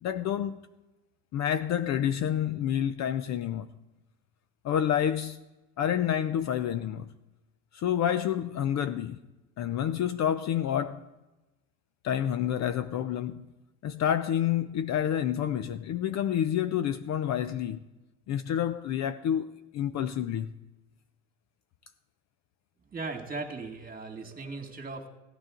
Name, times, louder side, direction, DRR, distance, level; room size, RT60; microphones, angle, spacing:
voice 1, 0.0-0.6 1.3-3.7 4.6-5.4 5.8-7.1 7.7-9.2 9.6-11.1 12.0-13.5 13.8-17.8 18.3-20.5, left 10 dB, 40° left, 0.7 m, -28 dB
voice 2, 22.9-25.1, right 3 dB, 20° right, 2.4 m, -38 dB
17.0 x 12.0 x 3.9 m
hypercardioid pair, 85°, 44 cm